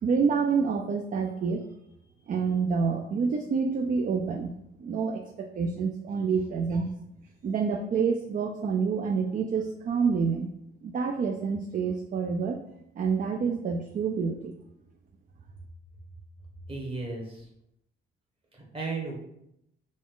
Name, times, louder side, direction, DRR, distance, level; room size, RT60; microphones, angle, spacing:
voice 1, 0.0-1.6 2.3-4.5 4.8-5.2 5.6-6.9 7.4-10.5 10.8-12.6 13.0-14.6, right 5 dB, 45° right, 5 dB, 0.4 m, -27 dB
voice 2, 16.7-17.4 18.5-19.2, right 3 dB, 25° right, -1 dB, 1.3 m, -35 dB
4.1 x 2.4 x 3.7 m, 0.81 s
cardioid pair, 90°, 20 cm